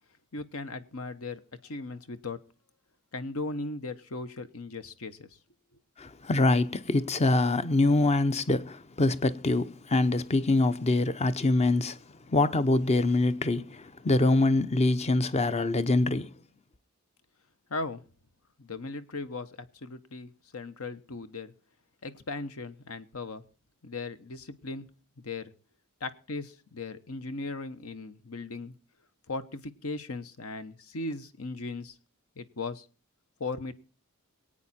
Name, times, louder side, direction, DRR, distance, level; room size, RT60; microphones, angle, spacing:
voice 1, 0.3-2.4 3.1-5.3 17.7-18.0 18.6-21.5 22.0-23.4 23.8-24.9 25.2-25.5 26.0-28.7 29.3-31.9 32.4-32.9 33.4-33.7, left 3 dB, 70° left, 1.1 m, -37 dB
voice 2, 6.0-12.0 12.3-16.3, left 2 dB, 30° left, 0.7 m, -25 dB
23.0 x 8.8 x 4.2 m
head